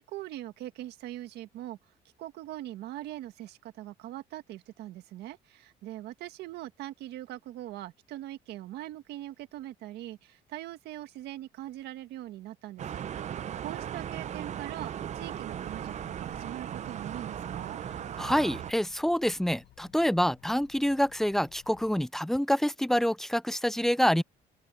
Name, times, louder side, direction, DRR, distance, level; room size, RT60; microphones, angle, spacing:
voice 1, 0.0-1.8 2.2-13.0 13.6-17.8, right 14 dB, 80° right, 1.7 m, -42 dB
sound 1, 12.8-18.7, right 9 dB, 45° right, 0.6 m, -37 dB
sound 2, 15.5-22.0, left 17 dB, 85° left, 6.5 m, -58 dB
voice 2, 18.2-24.2, equal, ahead, 0.4 m, -27 dB
open air
cardioid pair, 110°, 17 cm